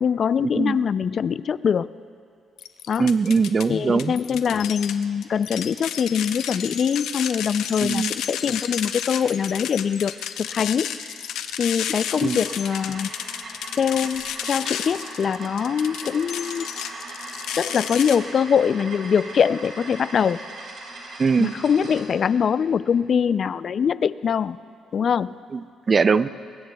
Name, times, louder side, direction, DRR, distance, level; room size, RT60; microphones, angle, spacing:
voice 1, 0.0-1.9 2.9-3.1 3.7-10.1 10.4-10.9 11.6-13.1 13.8-16.7 17.6-20.4 21.4-24.6 24.9-25.4, left 7 dB, 55° left, 17 dB, 0.3 m, -23 dB
sound 1, 2.6-3.7 4.0-18.2, left 9 dB, 85° left, 0.7 m, -32 dB
voice 2, 3.0-4.1 7.8-8.1 12.2-12.4 21.2-21.6 25.5-25.6 25.9-26.3, right 5 dB, 35° right, 15 dB, 0.4 m, -21 dB
sound 2, 11.9-22.1, right 2 dB, 60° right, 4.3 m, -39 dB
23.0 x 21.0 x 2.3 m, 2.3 s
cardioid pair, 90°, 0 cm